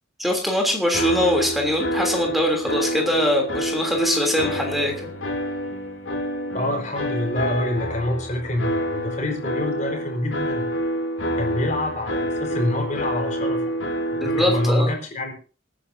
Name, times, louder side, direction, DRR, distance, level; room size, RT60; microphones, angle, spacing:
voice 1, 0.2-5.1 14.2-14.9, left 1 dB, ahead, 2 dB, 3.2 m, -22 dB
sound 1, 0.9-14.7, equal, 80° left, 2.9 m, -27 dB
voice 2, 6.5-10.7 11.4-13.7 14.1-15.3, left 1 dB, 40° left, 1 dB, 4.4 m, -26 dB
27.0 x 9.9 x 2.8 m, 0.36 s
head